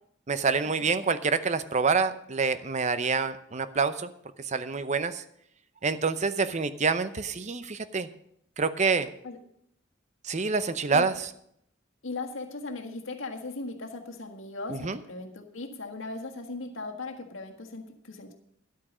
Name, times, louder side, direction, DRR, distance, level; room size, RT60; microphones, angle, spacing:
voice 1, 0.3-4.1 4.4-5.2 5.8-8.1 8.6-9.1 10.2-11.3 14.7-15.0, right 4 dB, 35° right, 12 dB, 0.6 m, -27 dB
voice 2, 12.0-18.3, left 3 dB, 90° left, 3 dB, 1.7 m, -38 dB
11.5 x 8.6 x 6.2 m, 0.71 s
head